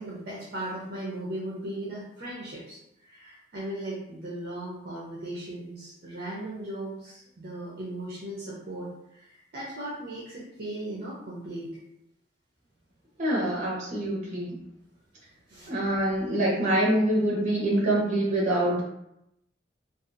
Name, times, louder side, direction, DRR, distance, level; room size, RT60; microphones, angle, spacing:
voice 1, 0.0-11.7 15.5-15.7, right 1 dB, 55° right, -6 dB, 0.6 m, -37 dB
voice 2, 13.2-14.6 15.7-18.8, right 1 dB, 40° right, -5 dB, 0.9 m, -25 dB
2.7 x 2.3 x 2.5 m, 0.81 s
head